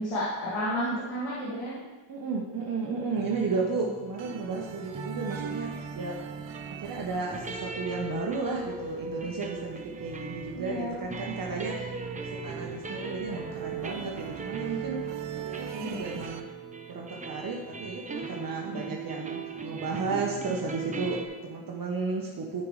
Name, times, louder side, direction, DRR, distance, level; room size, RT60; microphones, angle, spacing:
voice 1, 0.0-1.8 10.5-11.0 15.8-16.0 18.7-19.0, equal, 85° left, -7 dB, 1.9 m, -32 dB
voice 2, 2.1-5.7 5.9-6.2 6.8-15.0 15.4-16.5 16.9-22.7, right 4 dB, 45° right, -2 dB, 1.0 m, -33 dB
sound 1, 3.2-21.3, right 4 dB, 15° right, 0.6 m, -39 dB
sound 2, 4.2-16.4, right 8 dB, 65° right, 0.7 m, -45 dB
13.0 x 5.2 x 3.2 m, 1.3 s
cardioid pair, 120°, 49 cm